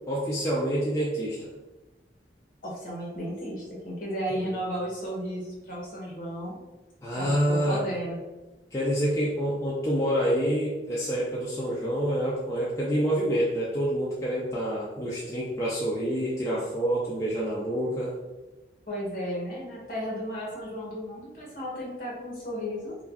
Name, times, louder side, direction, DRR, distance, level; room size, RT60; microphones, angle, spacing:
voice 1, 0.1-1.5 4.4-4.6 7.0-7.8 8.7-18.1, equal, 15° left, -6 dB, 0.3 m, -27 dB
voice 2, 2.6-6.6 7.1-8.2 18.9-23.0, equal, 45° left, -4 dB, 0.9 m, -34 dB
2.4 x 2.2 x 3.3 m, 1.1 s
head